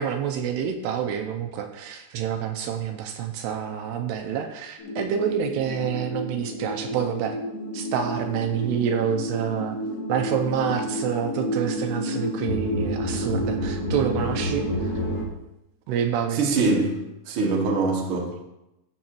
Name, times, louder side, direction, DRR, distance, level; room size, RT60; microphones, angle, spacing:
voice 1, 0.0-7.4 7.7-9.8 10.1-14.9 15.9-16.4, right 8 dB, 85° right, 5 dB, 2.6 m, -27 dB
sound 1, 4.8-15.2, equal, 80° left, 3.9 m, -30 dB
voice 2, 16.3-18.4, right 3 dB, 55° right, -2 dB, 1.5 m, -24 dB
14.0 x 6.3 x 3.0 m, 0.91 s
omnidirectional pair, 4.9 m